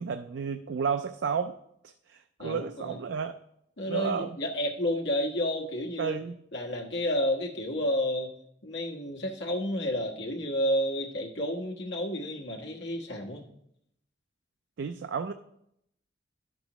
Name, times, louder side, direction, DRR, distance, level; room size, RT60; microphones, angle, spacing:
voice 1, 0.0-1.6 2.1-3.4 3.9-4.4 6.0-6.4 14.8-15.3, right 6 dB, 80° right, 9 dB, 0.4 m, -32 dB
voice 2, 2.4-3.0 3.8-6.2 6.5-8.3 8.6-13.4, equal, 75° left, 0 dB, 1.4 m, -31 dB
12.0 x 6.1 x 3.0 m, 0.76 s
head